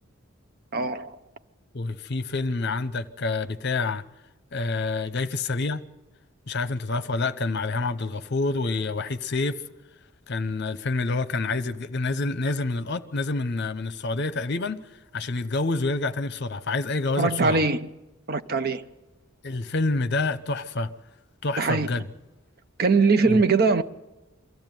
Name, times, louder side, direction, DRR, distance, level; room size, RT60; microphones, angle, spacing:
voice 1, 0.7-1.2 17.2-17.9 18.3-18.8 21.6-21.9 22.8-23.8, right 4 dB, 45° right, 0.7 m, -21 dB
voice 2, 1.7-4.0 4.5-5.8 6.5-9.6 10.3-14.8 15.1-17.6 19.4-20.9 21.4-22.0 23.3-23.4, left 3 dB, 50° left, 0.8 m, -27 dB
23.0 x 14.0 x 9.2 m
head